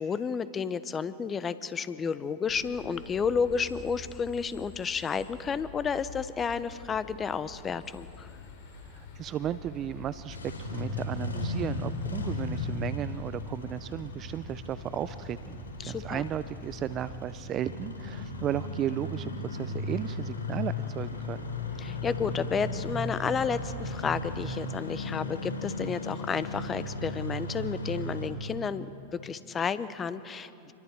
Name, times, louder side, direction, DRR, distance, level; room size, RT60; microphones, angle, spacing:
voice 1, 0.0-8.3 15.8-16.2 21.8-28.9 29.2-30.7, left 6 dB, 25° left, 14 dB, 1.0 m, -31 dB
sound 1, 2.5-17.1, left 4 dB, 55° left, 4.5 m, -48 dB
voice 2, 8.8-21.5, right 10 dB, 35° right, 15 dB, 0.6 m, -35 dB
Engine starting, 10.2-28.3, left 2 dB, 80° left, 4.4 m, -36 dB
28.0 x 22.5 x 4.7 m, 2.6 s
hypercardioid pair, 95°, 0 cm